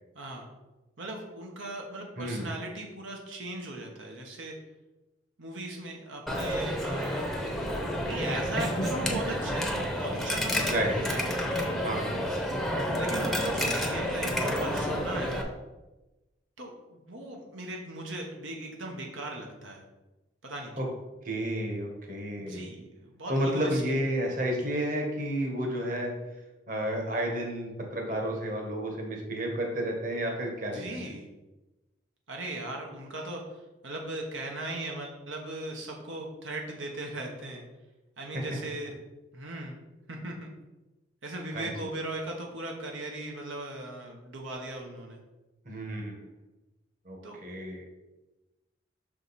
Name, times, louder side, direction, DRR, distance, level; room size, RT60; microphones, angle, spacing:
voice 1, 0.1-0.5 1.0-4.5 5.4-7.3 8.0-11.5 13.0-15.5 16.6-19.8 20.4-20.7 22.4-23.8 30.7-31.3 32.3-33.4 33.8-37.6 38.2-39.0 39.3-39.8 40.1-40.5 41.2-45.2 47.2-47.4, right 2 dB, 85° right, 0 dB, 1.1 m, -38 dB
Coin (dropping), 6.3-15.4, equal, ahead, 0.7 m, -30 dB
voice 2, 21.2-22.7 23.3-26.1 26.7-31.1 38.3-38.4 41.5-41.7 45.6-46.1 47.0-47.8, right 1 dB, 45° right, 1 dB, 1.3 m, -31 dB
6.2 x 5.1 x 4.1 m, 1.1 s
head